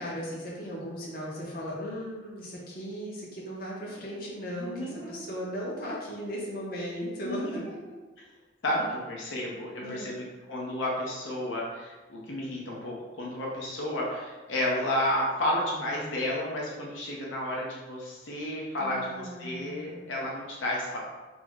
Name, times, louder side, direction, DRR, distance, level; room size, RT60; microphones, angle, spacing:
voice 1, 0.0-7.6 9.8-10.1 18.8-20.1, equal, 50° left, -4 dB, 0.7 m, -37 dB
voice 2, 4.5-5.3 7.2-7.6 8.6-10.2 10.5-21.0, left 1 dB, 85° left, -3 dB, 0.6 m, -32 dB
3.4 x 2.0 x 3.4 m, 1.2 s
head